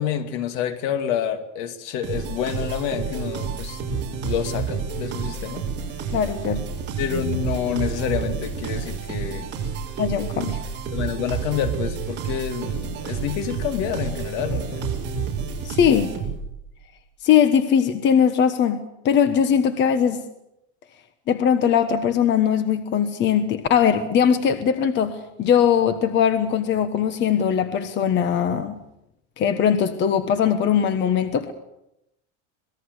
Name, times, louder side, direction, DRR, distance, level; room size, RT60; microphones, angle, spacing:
voice 1, 0.0-3.8 4.2-5.7 7.0-9.5 10.9-14.9, left 9 dB, 60° left, 2.5 m, -28 dB
sound 1, 2.0-16.6, right 5 dB, 30° right, 6.7 m, -29 dB
voice 2, 6.1-6.6 10.0-10.6 15.6-16.1 17.2-20.2 21.3-28.8 29.4-31.5, left 8 dB, 30° left, 1.3 m, -20 dB
26.0 x 20.0 x 8.1 m
cardioid pair, 175°, 35 cm